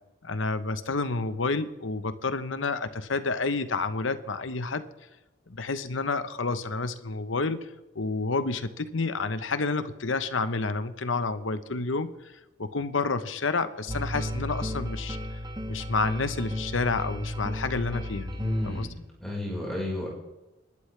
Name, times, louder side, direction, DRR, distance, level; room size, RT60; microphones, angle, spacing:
voice 1, 0.2-4.8 5.5-12.3 12.6-15.2 15.7-18.3 18.6-18.9, left 3 dB, 80° left, 11 dB, 1.0 m, -29 dB
sound 1, 13.9-18.9, equal, 20° right, 1.4 m, -34 dB
voice 2, 18.2-18.9 19.2-20.1, left 1 dB, ahead, -4 dB, 4.9 m, -31 dB
28.0 x 12.0 x 3.4 m, 1.0 s
head